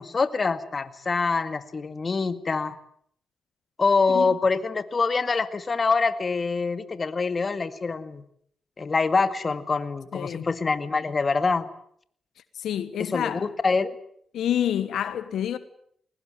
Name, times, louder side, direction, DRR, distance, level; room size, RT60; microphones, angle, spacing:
voice 1, 0.0-2.8 3.8-8.2 8.8-11.7 13.0-14.0, left 4 dB, 40° left, 2.1 m, -25 dB
voice 2, 10.1-10.5 12.5-13.5 14.3-15.6, left 10 dB, 80° left, 1.3 m, -28 dB
22.0 x 19.5 x 9.4 m
cardioid pair, 80°, 0 cm